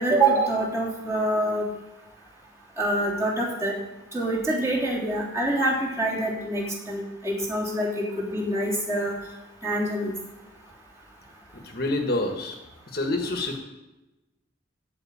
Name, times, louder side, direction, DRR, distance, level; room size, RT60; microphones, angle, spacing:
voice 1, 0.0-1.7 2.8-3.7 4.1-9.1 9.6-10.1, right 1 dB, 15° right, -5 dB, 3.2 m, -25 dB
voice 2, 11.5-12.6 12.9-13.6, left 2 dB, 50° left, 3 dB, 1.4 m, -27 dB
14.5 x 5.4 x 8.9 m, 1.0 s
head